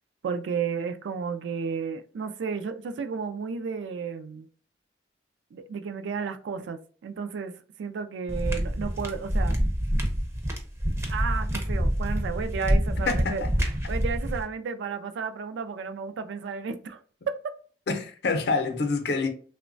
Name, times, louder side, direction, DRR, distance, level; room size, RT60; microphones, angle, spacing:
voice 1, 0.2-4.5 5.5-7.5 7.8-9.6 11.1-13.4 13.9-17.0 17.3-17.5, right 5 dB, 85° right, 0.3 m, -32 dB
sound 1, 8.3-14.4, equal, 15° right, 0.4 m, -26 dB
voice 2, 13.1-13.5 17.9-19.3, left 4 dB, 65° left, 0.5 m, -27 dB
3.0 x 2.1 x 2.5 m
head